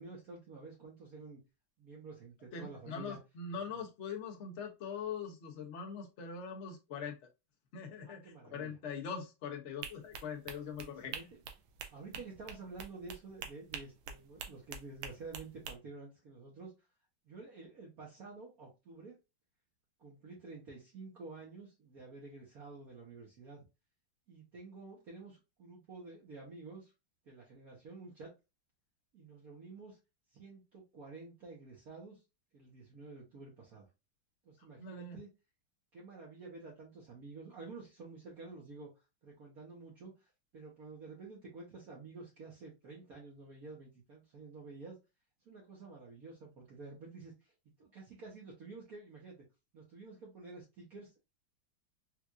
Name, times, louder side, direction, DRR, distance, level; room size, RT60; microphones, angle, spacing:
voice 1, 0.0-1.4 1.8-3.2 8.0-8.7 10.8-11.4 11.9-16.7 17.2-19.2 20.0-23.6 24.3-26.9 27.2-28.3 29.1-30.0 30.3-32.2 32.5-33.9 34.4-35.3 35.9-38.9 39.2-45.0 45.4-49.4 49.7-51.2, right 3 dB, 50° right, -3 dB, 1.3 m, -50 dB
voice 2, 2.5-7.2 7.7-11.1 34.8-35.2, left 6 dB, 60° left, 3 dB, 0.7 m, -42 dB
sound 1, 9.8-15.7, right 7 dB, 85° right, 1.4 m, -46 dB
4.5 x 2.5 x 2.3 m, 0.26 s
omnidirectional pair, 2.2 m